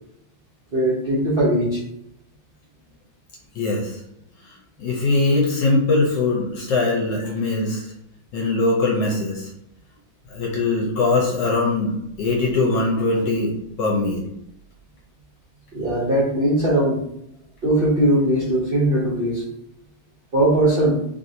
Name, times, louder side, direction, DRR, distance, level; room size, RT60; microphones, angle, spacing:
voice 1, 0.7-1.8 15.7-17.0 17.6-19.4 20.3-21.0, right 1 dB, 55° right, -6 dB, 0.6 m, -19 dB
voice 2, 3.6-3.9 4.8-7.8 8.3-9.5 10.3-14.2, left 3 dB, 75° left, -2 dB, 1.3 m, -21 dB
3.3 x 2.6 x 2.7 m, 0.76 s
omnidirectional pair, 2.1 m